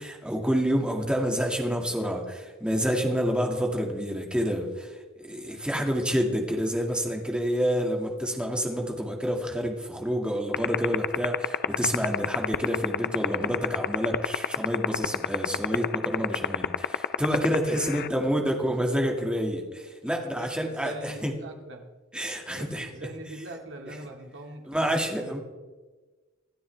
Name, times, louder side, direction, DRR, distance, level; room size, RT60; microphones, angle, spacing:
voice 1, 0.0-21.3 22.1-22.9 24.7-25.4, equal, 5° right, 1 dB, 2.1 m, -28 dB
sound 1, 10.5-18.1, left 8 dB, 50° left, 0.4 m, -23 dB
voice 2, 17.9-18.5 20.2-21.9 22.5-25.4, right 1 dB, 65° right, 3 dB, 2.1 m, -42 dB
25.5 x 9.9 x 3.4 m, 1.3 s
head